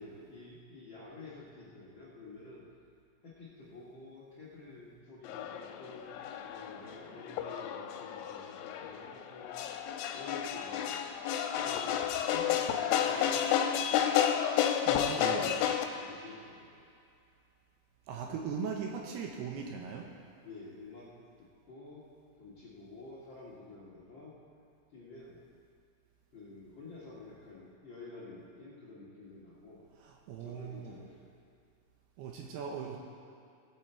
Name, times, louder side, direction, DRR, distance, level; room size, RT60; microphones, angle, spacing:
voice 1, 0.0-2.6 3.2-6.1 6.4-9.6 10.1-11.0 11.5-14.2 15.1-15.6 15.9-16.9 20.4-21.1 21.4-22.0 22.4-24.3 24.9-25.4 26.3-29.8 30.4-31.3, left 3 dB, 70° left, -8 dB, 1.1 m, -50 dB
sound 1, 5.2-15.8, left 9 dB, 85° left, 3.1 m, -31 dB
voice 2, 14.8-15.5 18.1-20.1 30.0-31.1 32.2-33.0, right 6 dB, 80° right, 1 dB, 2.4 m, -39 dB
18.0 x 8.1 x 4.5 m, 2.5 s
omnidirectional pair, 5.5 m